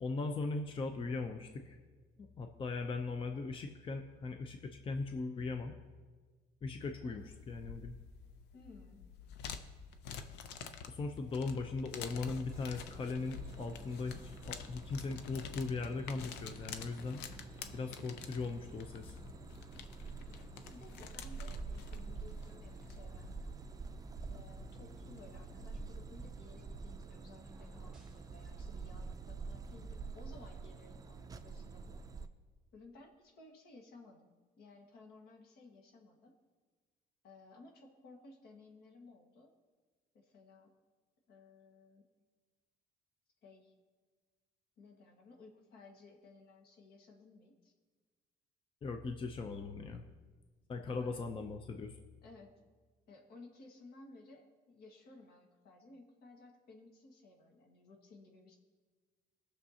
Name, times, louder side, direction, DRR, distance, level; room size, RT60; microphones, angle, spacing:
voice 1, 0.0-1.8 2.2-5.7 6.6-7.9 10.9-14.1 14.4-17.2 17.7-19.1 48.8-50.1 50.7-52.0, left 3 dB, 30° left, 5 dB, 0.6 m, -39 dB
sound 1, 7.2-26.2, left 7 dB, 90° left, 0.6 m, -50 dB
voice 2, 8.5-9.0 11.2-11.4 20.3-23.6 24.3-32.0 32.7-34.3 34.6-36.3 37.2-39.5 40.1-40.7 41.3-42.0 43.4-43.7 44.8-47.7 50.8-51.2 52.2-52.5 53.1-58.6, left 3 dB, 70° left, 2 dB, 1.6 m, -58 dB
sound 2, 12.5-32.3, right 4 dB, 20° right, 0.5 m, -48 dB
sound 3, 27.4-28.3, right 1 dB, 5° right, 2.0 m, -63 dB
20.0 x 6.7 x 2.8 m, 1.4 s
cardioid pair, 110°, 17 cm